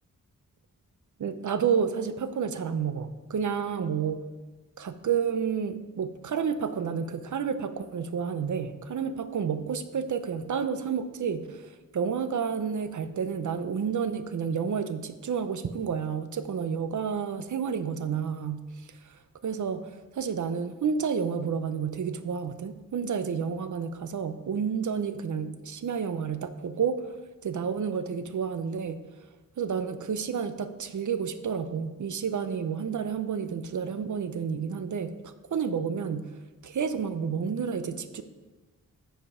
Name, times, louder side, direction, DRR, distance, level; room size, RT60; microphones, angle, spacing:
voice 1, 1.2-4.3 4.8-18.6 19.0-19.2 19.4-27.1 27.4-29.0 29.6-36.3 36.6-38.2, right 6 dB, 60° right, 11 dB, 0.6 m, -30 dB
8.5 x 5.0 x 4.9 m, 1.2 s
wide cardioid pair, 135°, 34 cm